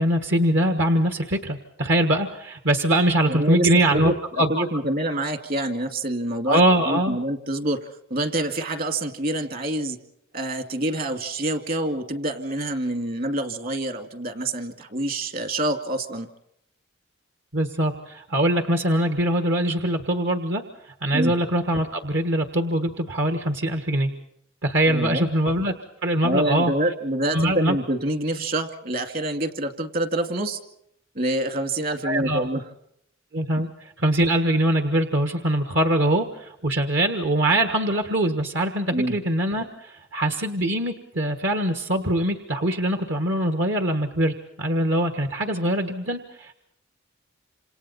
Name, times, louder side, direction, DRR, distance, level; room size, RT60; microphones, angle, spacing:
voice 1, 0.0-4.6 6.5-7.2 17.5-20.6 21.0-24.1 24.6-25.7 26.0-26.7 27.3-27.8 32.0-32.5 33.3-46.5, right 1 dB, 65° right, 6 dB, 1.6 m, -23 dB
voice 2, 3.3-10.0 10.3-16.3 21.1-21.3 24.9-25.3 26.2-30.6 31.2-32.6 33.6-33.7 38.9-39.2, right 1 dB, 50° right, 7 dB, 2.2 m, -26 dB
27.5 x 27.5 x 4.3 m, 0.73 s
head